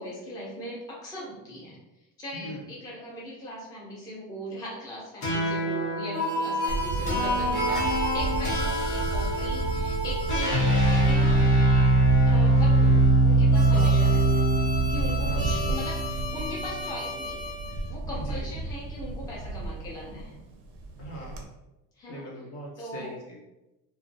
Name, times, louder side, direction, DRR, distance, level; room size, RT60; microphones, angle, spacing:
voice 1, 0.0-1.8 2.2-11.4 12.2-14.5 14.9-17.5 17.9-20.4 22.0-22.3 22.8-23.1, equal, 10° left, -6 dB, 0.4 m, -39 dB
voice 2, 2.3-2.6 13.6-14.0 15.2-15.6 18.1-18.4 21.0-21.5 22.1-23.4, equal, 45° left, -2 dB, 0.8 m, -40 dB
sound 1, 5.2-17.7, right 1 dB, 90° left, 1.0 m, -23 dB
Camera, 6.7-21.4, right 2 dB, 45° right, 0.4 m, -33 dB
2.3 x 2.2 x 2.6 m, 0.97 s
cardioid pair, 145°, 34 cm